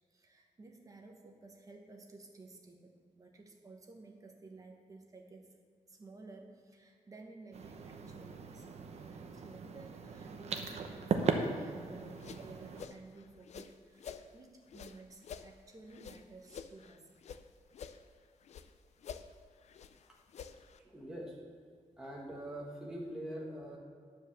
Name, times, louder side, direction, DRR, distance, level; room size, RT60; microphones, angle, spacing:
voice 1, 0.1-5.5 5.9-8.7 9.1-17.1, right 3 dB, 25° right, 2 dB, 1.1 m, -54 dB
sound 1, 7.5-12.8, right 5 dB, 60° right, 0.8 m, -38 dB
sound 2, 12.0-14.3 14.7-17.4 17.7-18.7 19.0-20.8, left 7 dB, 60° left, 0.5 m, -49 dB
voice 2, 20.8-21.4 22.0-23.8, right 1 dB, 5° right, -4 dB, 1.3 m, -43 dB
10.0 x 4.9 x 7.0 m, 2.1 s
wide cardioid pair, 170°, 13 cm